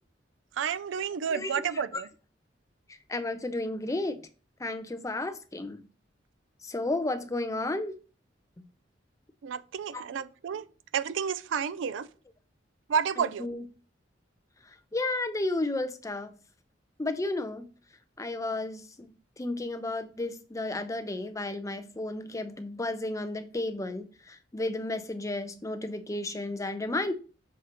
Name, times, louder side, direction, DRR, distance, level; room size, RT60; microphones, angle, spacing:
voice 1, 0.6-2.1 9.4-10.7 10.9-12.1 12.9-13.5, right 7 dB, 80° right, 0.4 m, -30 dB
voice 2, 1.3-1.8 3.1-4.2 4.6-5.8 6.6-8.0 9.9-10.0 13.2-13.6 14.9-16.3 17.0-17.7 18.2-19.1 19.4-27.1, left 2 dB, 15° left, 0.5 m, -32 dB
6.5 x 2.8 x 5.1 m
head